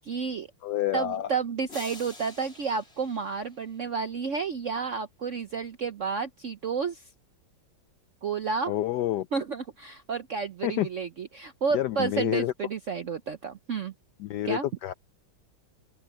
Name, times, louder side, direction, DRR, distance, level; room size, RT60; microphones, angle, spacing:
voice 1, 0.0-0.5 0.9-7.1 8.2-8.7 9.3-13.9 14.4-14.6, right 5 dB, 65° right, 0.7 m, -31 dB
voice 2, 0.6-1.3 8.7-9.3 10.6-10.9 11.7-12.5 14.2-14.9, left 13 dB, 75° left, 1.0 m, -28 dB
sound 1, 1.7-4.0, left 2 dB, 30° left, 4.7 m, -47 dB
open air
omnidirectional pair, 2.3 m